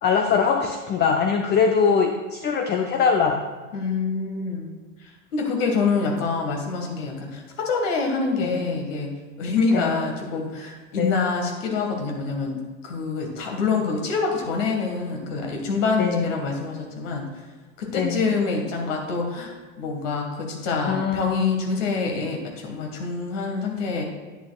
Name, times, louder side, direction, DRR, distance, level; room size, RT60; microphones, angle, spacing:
voice 1, 0.0-3.4 8.4-8.7 9.7-9.9 11.0-11.2 16.0-16.3 18.0-18.2 20.9-21.5, left 6 dB, 25° left, 5 dB, 0.5 m, -22 dB
voice 2, 3.7-4.7 5.0-9.1 9.4-17.3 17.8-24.0, left 4 dB, 65° left, 1 dB, 1.7 m, -26 dB
10.0 x 8.6 x 2.4 m, 1.3 s
hypercardioid pair, 90°, 40 cm